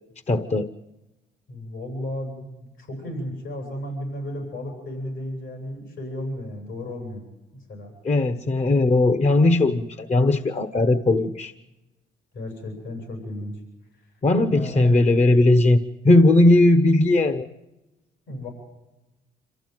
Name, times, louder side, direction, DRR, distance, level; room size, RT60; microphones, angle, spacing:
voice 1, 0.3-0.7 8.0-11.5 14.2-17.5, left 2 dB, 35° left, 10 dB, 1.2 m, -18 dB
voice 2, 1.5-7.2 7.7-7.9 12.3-13.6 14.0-14.1 14.5-15.2 18.3-18.5, left 1 dB, 75° left, 3 dB, 7.8 m, -34 dB
27.0 x 14.5 x 9.2 m, 1.0 s
cardioid pair, 90°, 20 cm